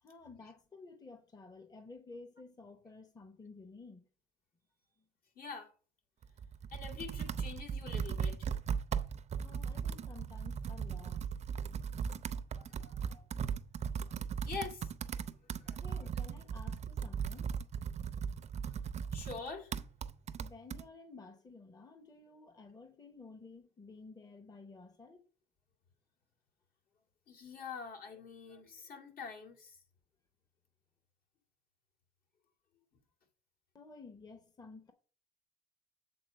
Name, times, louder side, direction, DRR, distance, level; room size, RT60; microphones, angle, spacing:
voice 1, 0.0-4.1 9.4-11.2 12.9-13.3 15.8-17.5 20.4-25.2 33.7-34.9, left 3 dB, 20° left, 0.9 m, -53 dB
voice 2, 5.4-5.7 6.7-8.5 12.5-13.0 14.1-14.2 14.4-14.9 15.3-16.1 19.1-19.8 27.3-29.8, left 5 dB, 60° left, 2.2 m, -45 dB
Computer keyboard, 6.2-20.8, right 7 dB, 40° right, 0.5 m, -38 dB
7.8 x 3.9 x 6.3 m
cardioid pair, 110°, 17 cm